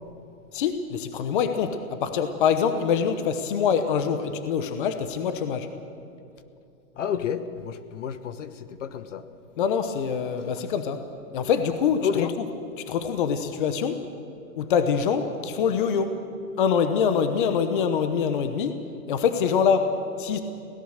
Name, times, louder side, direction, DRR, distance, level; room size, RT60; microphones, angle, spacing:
voice 1, 0.5-5.7 9.6-11.0 11.3-12.3 12.8-14.0 14.6-16.2 16.6-18.7 19.1-20.4, left 6 dB, 35° left, 9 dB, 1.1 m, -24 dB
voice 2, 7.0-9.2 12.0-12.3, left 8 dB, 55° left, 12 dB, 1.2 m, -30 dB
24.5 x 17.5 x 6.6 m, 2.8 s
hypercardioid pair, 165°, 45 cm